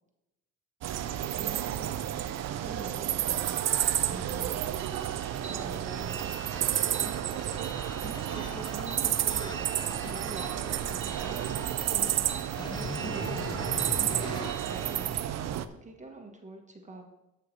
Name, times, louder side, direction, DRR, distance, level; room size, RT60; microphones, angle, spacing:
sound 1, 0.8-15.6, right 11 dB, 60° right, 0.6 m, -31 dB
voice 1, 1.3-3.8 4.1-4.7 5.4-6.3 8.2-17.0, right 2 dB, 25° right, 2 dB, 1.4 m, -46 dB
sound 2, 4.8-15.1, right 5 dB, 40° right, 1.1 m, -44 dB
sound 3, 6.5-14.5, left 3 dB, 15° left, 0.5 m, -42 dB
13.5 x 5.8 x 3.3 m, 0.96 s
cardioid pair, 90°, 30 cm